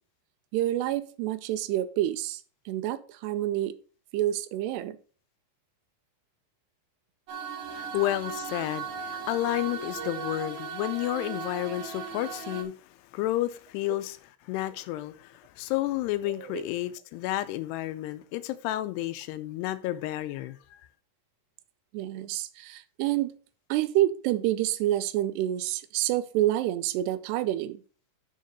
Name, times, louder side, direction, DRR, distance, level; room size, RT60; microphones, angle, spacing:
voice 1, 0.5-3.8 4.1-5.0 10.0-10.2 11.5-11.6 16.3-16.7 21.9-23.4 23.7-27.8, right 13 dB, 90° right, 2.7 m, -28 dB
sound 1, 7.3-12.6, right 6 dB, 65° right, 1.8 m, -37 dB
voice 2, 7.7-12.7 13.1-14.2 14.4-20.8, left 15 dB, 85° left, 2.6 m, -31 dB
6.6 x 6.5 x 5.3 m
omnidirectional pair, 4.8 m